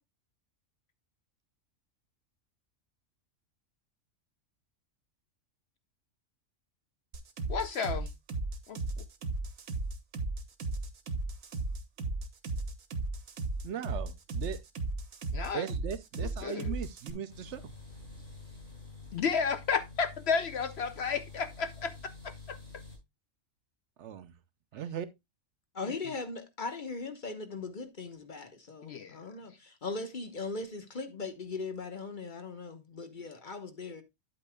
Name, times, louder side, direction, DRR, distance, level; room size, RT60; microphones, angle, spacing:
sound 1, 7.1-17.1, right 3 dB, 80° right, 1.5 m, -35 dB
voice 1, 7.5-8.1 8.7-9.0 15.3-15.7 16.2-16.7 19.1-22.6 25.8-25.9 28.8-29.2, left 6 dB, 60° left, 0.8 m, -33 dB
voice 2, 13.6-14.6 15.5-17.7 24.0-24.3 24.7-25.1, right 9 dB, 65° right, 0.9 m, -38 dB
sound 2, 17.3-23.0, left 3 dB, 85° left, 5.0 m, -48 dB
voice 3, 25.7-34.0, left 3 dB, 40° left, 1.2 m, -39 dB
9.9 x 8.4 x 2.2 m
omnidirectional pair, 1.4 m